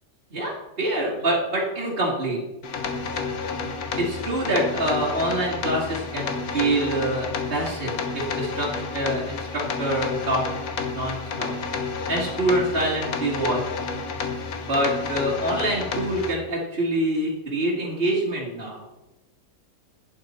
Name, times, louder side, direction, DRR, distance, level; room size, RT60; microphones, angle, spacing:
voice 1, 0.8-2.4 4.0-10.4 10.8-11.6 12.1-13.6 14.6-18.8, right 1 dB, 40° right, -5 dB, 2.0 m, -26 dB
sound 1, 2.6-16.3, left 4 dB, 75° left, 1.6 m, -30 dB
11.5 x 9.5 x 4.3 m, 1.0 s
omnidirectional pair, 1.6 m